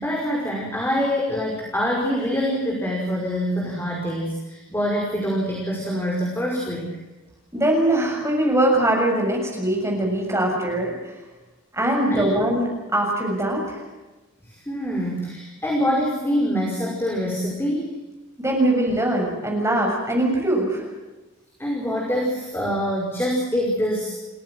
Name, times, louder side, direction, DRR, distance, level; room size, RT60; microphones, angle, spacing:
voice 1, 0.0-6.9 12.1-12.3 14.4-17.9 21.6-24.1, equal, 10° left, -2 dB, 5.4 m, -25 dB
voice 2, 7.5-10.9 11.7-13.8 18.4-20.8, right 1 dB, 15° right, 0 dB, 7.0 m, -22 dB
29.5 x 17.0 x 7.8 m, 1.2 s
head